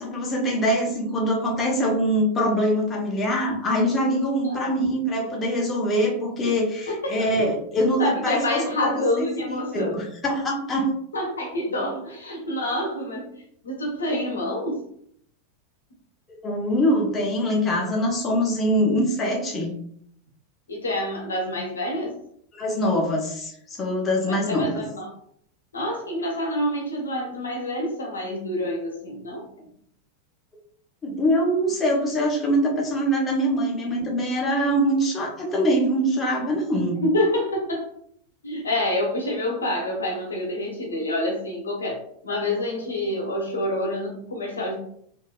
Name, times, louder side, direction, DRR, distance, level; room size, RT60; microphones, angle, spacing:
voice 1, 0.0-8.9 9.7-10.9 11.8-11.9 16.4-19.8 22.5-24.7 31.0-37.0, equal, 20° left, -2 dB, 0.9 m, -23 dB
voice 2, 8.0-10.0 11.1-14.8 20.7-22.2 24.3-25.1 25.7-29.5 37.0-37.9 38.4-44.8, left 1 dB, 70° left, 0 dB, 0.8 m, -27 dB
3.7 x 2.6 x 2.3 m, 0.67 s
figure-of-eight pair, 90°, 0 cm